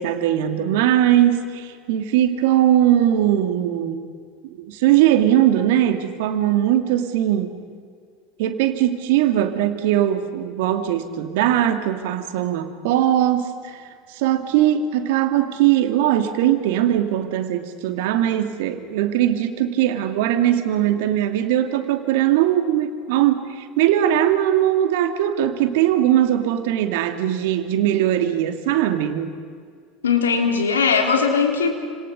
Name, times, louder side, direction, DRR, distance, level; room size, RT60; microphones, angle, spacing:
voice 1, 0.0-4.1 4.6-7.6 8.4-13.8 14.1-29.3, right 11 dB, 65° right, 8 dB, 2.4 m, -20 dB
voice 2, 30.0-31.8, left 5 dB, 80° left, 3 dB, 3.7 m, -19 dB
30.0 x 27.5 x 5.5 m, 2.1 s
hypercardioid pair, 75°, 0 cm